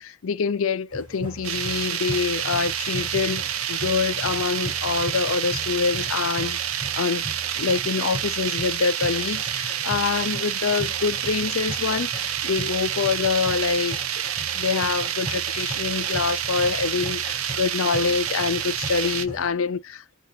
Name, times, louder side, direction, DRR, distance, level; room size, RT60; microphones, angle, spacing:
voice 1, 0.0-6.6 6.9-14.0 14.5-20.1, left 5 dB, 80° left, 0.5 m, -26 dB
sound 1, 0.9-19.5, right 1 dB, 25° right, 3.4 m, -38 dB
sound 2, 1.4-19.3, right 10 dB, 90° right, 0.5 m, -28 dB
6.3 x 2.6 x 2.7 m
head